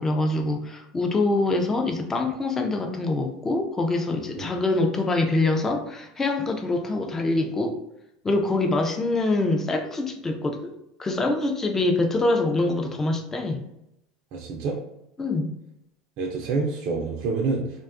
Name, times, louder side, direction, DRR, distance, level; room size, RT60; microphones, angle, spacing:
voice 1, 0.0-7.8 8.2-13.6 15.2-15.5, left 2 dB, 20° left, 5 dB, 0.4 m, -25 dB
voice 2, 14.3-14.8 16.2-17.6, right 4 dB, 60° right, 0 dB, 0.4 m, -27 dB
2.5 x 2.2 x 2.5 m, 0.83 s
supercardioid pair, 110°, 2 cm